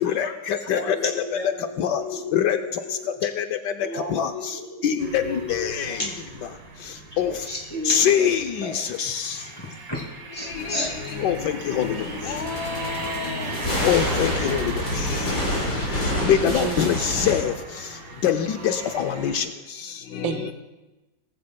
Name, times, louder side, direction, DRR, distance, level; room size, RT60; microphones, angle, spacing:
voice 1, 0.0-1.0 1.8-2.0 2.3-2.6 3.2-3.4 4.1-4.3 4.8-6.0 7.2-7.3 7.9-9.3 11.2-12.0 12.3-13.5 13.8-14.6 16.2-17.5 18.2-19.4, left 9 dB, 70° left, 7 dB, 1.2 m, -23 dB
voice 2, 0.7-3.0 3.8-6.2 7.2-8.3 8.6-8.8 9.3-10.0 10.3-11.2 12.0-12.2, left 1 dB, 10° left, -2 dB, 2.5 m, -33 dB
sound 1, 5.0-19.4, right 4 dB, 65° right, 1.9 m, -38 dB
sound 2, 7.5-7.6 8.9-9.0 11.1-11.2 11.8-17.4, left 1 dB, 55° left, 4.8 m, -28 dB
voice 3, 16.1-17.3 20.2-20.5, right 9 dB, 85° right, 7 dB, 1.6 m, -31 dB
19.5 x 15.0 x 2.2 m, 1.1 s
omnidirectional pair, 2.1 m